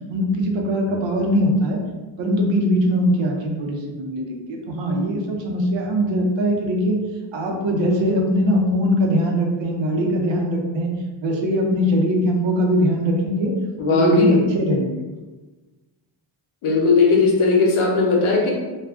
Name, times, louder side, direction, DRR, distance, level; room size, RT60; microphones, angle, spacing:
voice 1, 0.1-1.8 2.2-7.0 7.3-10.9 11.2-13.5 13.9-15.1, equal, 65° right, 1 dB, 0.6 m, -21 dB
voice 2, 13.8-14.4 16.6-18.5, left 4 dB, 85° left, -2 dB, 0.8 m, -17 dB
2.4 x 2.3 x 3.4 m, 1.2 s
wide cardioid pair, 155°, 48 cm